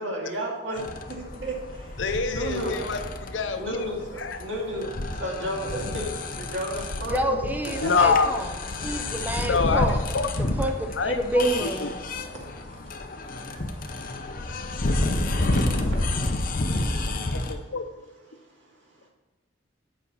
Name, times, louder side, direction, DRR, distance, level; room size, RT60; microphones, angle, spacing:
voice 1, 0.0-2.0 2.3-2.8 3.6-4.9 5.2-6.1 6.4-7.4 7.8-7.9 12.4-12.5 13.5-13.6 14.6-14.7 15.1-16.3 16.9-17.0, right 1 dB, 75° right, -2 dB, 2.2 m, -33 dB
sound 1, 0.8-17.5, left 2 dB, 50° left, 0.8 m, -30 dB
voice 2, 2.0-3.9 4.2-4.4 7.8-8.3 9.5-10.3 10.9-11.9 17.3-17.8, left 5 dB, 80° left, 8 dB, 0.7 m, -26 dB
voice 3, 7.1-8.1 8.8-10.0 10.6-11.8, right 1 dB, 10° right, 4 dB, 0.6 m, -27 dB
8.3 x 5.0 x 5.6 m, 1.2 s
head